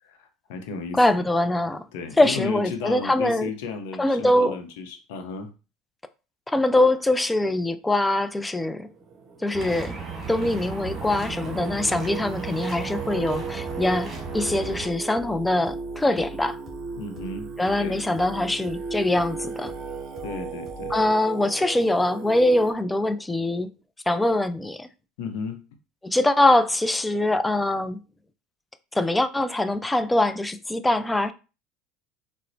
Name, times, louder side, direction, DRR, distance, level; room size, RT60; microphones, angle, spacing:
voice 1, 0.0-1.3 1.9-5.5 17.0-17.5 17.7-18.1 20.2-21.0 25.2-25.6, left 5 dB, 75° left, 0.6 m, -34 dB
voice 2, 1.0-1.8 2.2-3.5 4.0-4.6 6.5-8.9 9.4-10.0 10.3-16.6 17.6-19.7 20.9-23.7 24.1-24.9 26.0-28.0 28.9-31.3, left 1 dB, 10° left, 0.3 m, -23 dB
Singing, 8.9-22.7, right 5 dB, 50° right, 0.6 m, -36 dB
sound 1, 9.5-14.9, right 4 dB, 25° right, 1.5 m, -36 dB
sound 2, 13.2-21.2, left 1 dB, 25° left, 1.7 m, -45 dB
4.0 x 2.0 x 2.6 m
hypercardioid pair, 85°, 0 cm